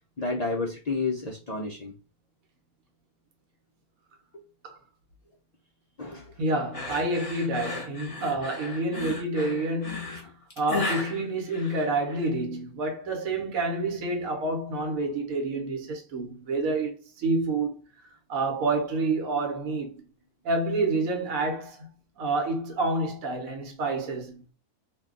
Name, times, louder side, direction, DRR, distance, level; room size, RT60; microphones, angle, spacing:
voice 1, 0.2-1.9 4.3-4.4 6.0-6.3, left 3 dB, 70° left, 0.4 m, -30 dB
voice 2, 6.4-17.7 18.3-20.0 20.4-21.9 22.2-24.4, right 2 dB, 70° right, 1.2 m, -28 dB
sound 1, 6.7-12.3, left 3 dB, 30° left, 0.8 m, -35 dB
2.7 x 2.2 x 3.7 m
omnidirectional pair, 1.5 m